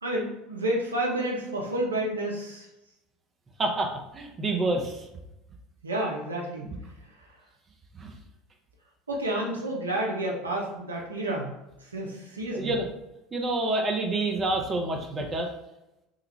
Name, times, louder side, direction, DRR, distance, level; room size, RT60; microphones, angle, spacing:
voice 1, 0.0-2.7 5.8-6.6 9.1-11.6 11.9-12.7, right 1 dB, 85° right, -1 dB, 0.6 m, -30 dB
voice 2, 3.6-5.0 7.9-8.1 12.5-12.9 13.3-15.5, right 2 dB, 30° right, 3 dB, 0.6 m, -28 dB
3.6 x 2.2 x 3.1 m, 0.91 s
figure-of-eight pair, 70°, 0 cm